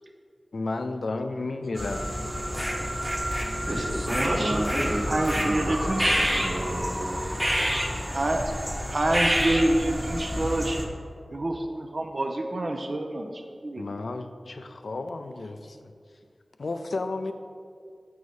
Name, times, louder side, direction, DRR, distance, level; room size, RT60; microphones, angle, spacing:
voice 1, 0.5-2.0 13.8-15.8 16.6-17.3, left 3 dB, 80° left, 8 dB, 0.4 m, -32 dB
sound 1, 1.7-10.8, equal, 5° right, 1.0 m, -28 dB
voice 2, 2.8-7.3, right 1 dB, 90° right, -4 dB, 1.5 m, -32 dB
voice 3, 4.2-6.2 8.1-8.5 8.9-10.8 11.3-13.9, right 1 dB, 55° right, 4 dB, 0.5 m, -27 dB
7.9 x 4.8 x 4.2 m, 2.2 s
wide cardioid pair, 70°, 0 cm